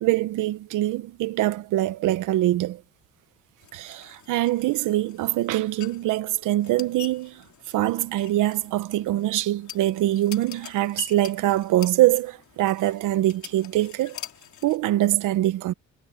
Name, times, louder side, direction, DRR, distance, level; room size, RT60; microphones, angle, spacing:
voice 1, 0.0-2.8 3.7-7.4 7.7-14.2 14.6-15.7, right 15 dB, 90° right, 1.1 m, -24 dB
sound 1, 3.6-14.8, left 8 dB, 70° left, 3.3 m, -44 dB
cardioid pair, 90°, 30 cm